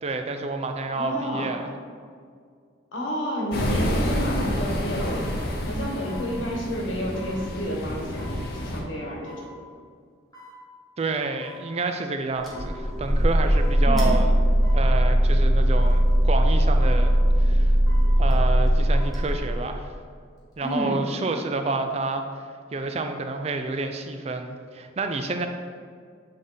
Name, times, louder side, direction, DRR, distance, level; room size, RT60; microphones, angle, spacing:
voice 1, 0.0-1.7 11.0-14.3 14.7-17.8 18.2-19.9 20.6-22.2 22.7-25.5, right 3 dB, 35° right, 6 dB, 0.4 m, -29 dB
voice 2, 0.9-1.5 2.9-5.3 5.7-9.5 13.8-14.2 20.6-21.0, equal, 80° left, -1 dB, 1.2 m, -30 dB
sound 1, 3.5-8.8, left 1 dB, 50° left, 0.8 m, -29 dB
sound 2, 5.0-5.2 6.1-6.3 7.1-7.4 8.2-8.4 9.3-9.5 10.3-10.6 11.4-11.7 12.5-12.7 13.5-13.8 14.6-14.9 15.7-16.0 16.8-17.0 17.9-18.1 18.9-19.2 20.4-20.9 21.3-21.4, equal, 20° left, 1.4 m, -46 dB
sound 3, 12.4-19.8, equal, ahead, 0.9 m, -20 dB
7.5 x 3.3 x 3.9 m, 2.1 s
head